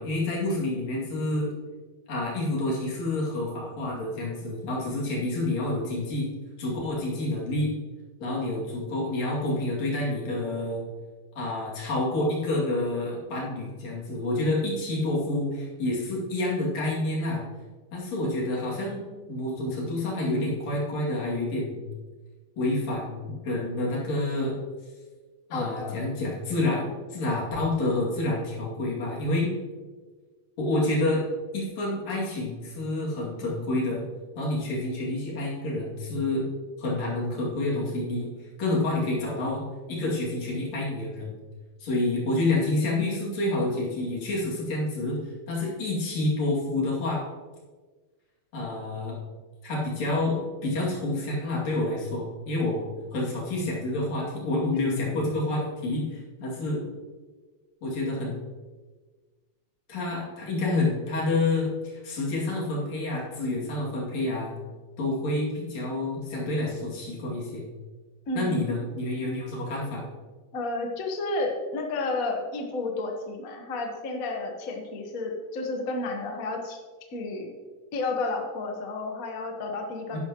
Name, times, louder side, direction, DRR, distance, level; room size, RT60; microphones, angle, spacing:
voice 1, 0.0-1.5 2.1-6.3 6.6-7.7 8.2-10.8 11.4-17.4 17.9-19.0 19.3-21.8 22.6-24.6 25.5-29.5 30.6-31.2 31.5-34.1 34.4-36.5 36.8-38.3 38.6-41.3 41.8-45.2 45.5-47.2 48.5-49.2 49.6-56.8 57.8-58.4 59.9-64.5 65.0-67.7 68.3-70.0 80.1-80.2, left 2 dB, 60° left, -4 dB, 3.6 m, -28 dB
voice 2, 25.5-26.0 54.8-54.9 68.3-68.9 70.5-76.8 77.1-77.5 77.9-80.2, left 2 dB, 80° left, 2 dB, 0.7 m, -31 dB
11.0 x 10.5 x 3.0 m, 1.4 s
omnidirectional pair, 3.6 m